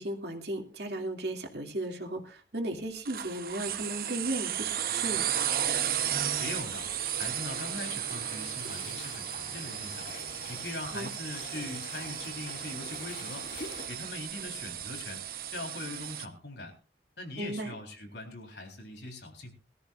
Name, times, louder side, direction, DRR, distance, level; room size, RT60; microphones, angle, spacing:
voice 1, 0.0-5.3 10.9-11.1 17.4-17.7, right 1 dB, 75° right, 3 dB, 2.4 m, -35 dB
sound 1, 3.0-16.3, right 10 dB, 55° right, 0.9 m, -34 dB
sound 2, 5.2-13.9, left 3 dB, 50° left, 2.4 m, -46 dB
voice 2, 6.4-6.9 7.1-10.1 10.5-13.5 13.9-16.7 17.2-19.5, left 2 dB, 80° left, 2 dB, 3.9 m, -41 dB
22.0 x 13.5 x 2.5 m, 0.34 s
head